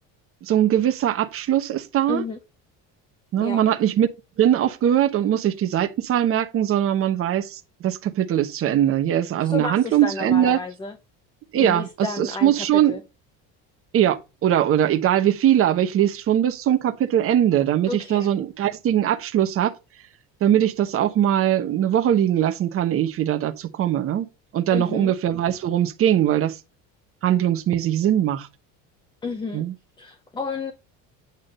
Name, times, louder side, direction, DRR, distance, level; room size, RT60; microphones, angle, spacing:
voice 1, 0.4-2.2 3.3-4.1 4.4-10.6 11.5-13.0 13.9-19.7 20.4-24.3 24.5-26.6 27.2-28.5 29.5-29.7, right 11 dB, 40° right, 1.1 m, -21 dB
voice 2, 2.1-2.4 3.4-3.6 9.4-11.0 11.6-13.0 17.9-18.3 24.7-25.1 29.2-29.6 30.0-30.7, left 4 dB, 15° left, 0.8 m, -31 dB
9.2 x 3.7 x 6.6 m
cardioid pair, 145°, 34 cm